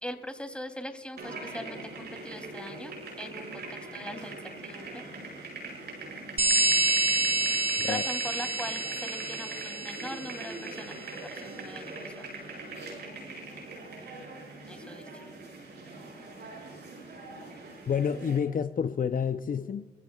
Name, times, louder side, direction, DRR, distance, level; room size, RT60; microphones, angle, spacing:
voice 1, 0.0-2.9 3.2-5.0 7.8-12.3 14.7-15.2, left 1 dB, 5° left, 3.1 m, -41 dB
sound 1, 1.2-18.4, right 2 dB, 85° right, 6.0 m, -42 dB
sound 2, 6.4-10.7, right 2 dB, 35° right, 2.0 m, -28 dB
voice 2, 17.9-19.9, left 7 dB, 55° left, 0.7 m, -29 dB
26.0 x 16.0 x 2.4 m
supercardioid pair, 45°, 17 cm